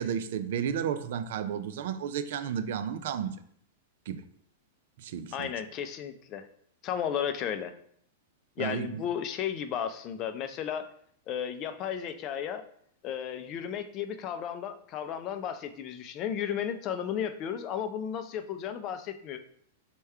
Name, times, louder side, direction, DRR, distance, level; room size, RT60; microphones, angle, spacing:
voice 1, 0.0-3.4 4.1-4.2 5.0-5.5 8.6-9.0, right 8 dB, 65° right, 10 dB, 0.4 m, -32 dB
voice 2, 5.3-6.5 6.8-7.7 8.6-10.9 11.3-12.7 13.0-19.5, left 9 dB, 40° left, 9 dB, 0.4 m, -34 dB
3.4 x 2.2 x 4.3 m, 0.65 s
hypercardioid pair, 120°, 0 cm